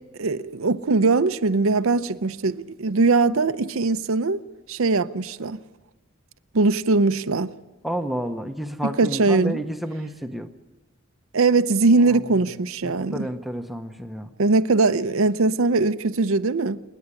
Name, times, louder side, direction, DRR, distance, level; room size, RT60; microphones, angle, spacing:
voice 1, 0.2-4.4 4.7-5.6 6.5-7.5 9.0-9.6 11.3-13.3 14.4-16.8, right 3 dB, 65° right, 0.6 m, -21 dB
voice 2, 7.8-10.5 12.8-14.3, right 1 dB, ahead, 0.8 m, -30 dB
28.5 x 10.0 x 9.8 m
head